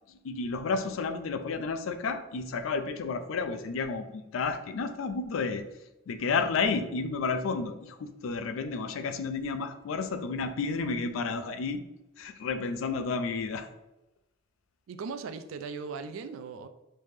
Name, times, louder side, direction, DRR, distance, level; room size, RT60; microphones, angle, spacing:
voice 1, 0.1-5.6 6.1-11.8 12.2-13.7, left 4 dB, 80° left, 9 dB, 0.4 m, -31 dB
voice 2, 14.9-16.7, right 5 dB, 85° right, 9 dB, 0.3 m, -38 dB
3.3 x 2.7 x 3.4 m, 0.96 s
head